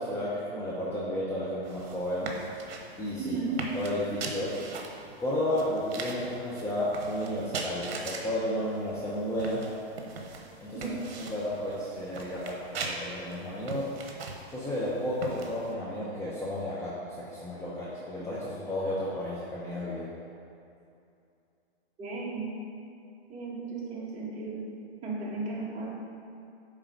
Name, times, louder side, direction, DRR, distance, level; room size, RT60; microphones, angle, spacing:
voice 1, 0.0-2.3 3.0-3.4 3.7-4.6 5.2-9.6 10.6-13.9 14.5-20.1, left 1 dB, 10° left, -8 dB, 0.9 m, -32 dB
sound 1, 1.6-15.7, right 4 dB, 65° right, 1.2 m, -41 dB
voice 2, 3.2-3.7 10.7-11.0 22.0-22.5 23.3-24.7 25.0-26.0, right 3 dB, 20° right, -5 dB, 1.7 m, -35 dB
8.9 x 3.8 x 5.3 m, 2.6 s
hypercardioid pair, 135°, 32 cm